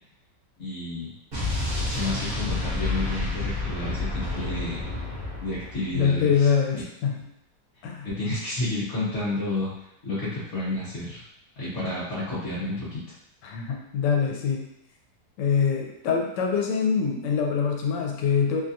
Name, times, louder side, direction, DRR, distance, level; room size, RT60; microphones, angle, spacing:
voice 1, 0.6-1.1 1.8-4.8 5.4-6.5 8.0-9.7 10.0-11.2 11.6-13.0, left 1 dB, 45° left, -11 dB, 1.2 m, -30 dB
Explosion, 1.3-6.1, left 2 dB, 45° right, 0.8 m, -29 dB
voice 2, 5.9-7.2 7.8-8.1 13.4-14.7 15.4-18.6, left 6 dB, 80° left, 1 dB, 1.2 m, -24 dB
3.0 x 2.3 x 2.6 m, 0.79 s
omnidirectional pair, 1.9 m